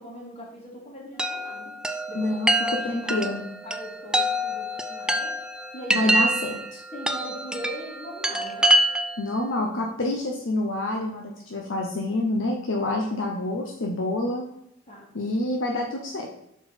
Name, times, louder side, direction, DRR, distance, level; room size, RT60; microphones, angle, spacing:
voice 1, 0.0-1.8 2.1-3.4 3.6-5.3 5.7-6.2 6.9-8.7 14.9-15.1, equal, 30° left, -3 dB, 2.2 m, -40 dB
Chime, 1.2-9.3, right 1 dB, 5° right, 0.3 m, -26 dB
voice 2, 2.1-2.5 2.9-3.4 5.9-6.8 9.2-14.4 15.1-16.3, left 1 dB, 65° left, 0 dB, 0.8 m, -27 dB
6.0 x 4.5 x 4.3 m, 0.80 s
head